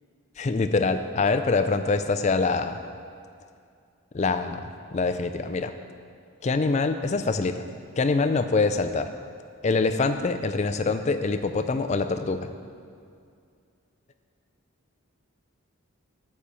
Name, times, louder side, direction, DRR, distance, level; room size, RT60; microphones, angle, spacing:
voice 1, 0.4-2.8 4.1-5.7 6.4-7.6 8.0-9.1 9.6-12.5, left 3 dB, 30° left, 9 dB, 0.3 m, -25 dB
9.8 x 4.4 x 6.9 m, 2.3 s
head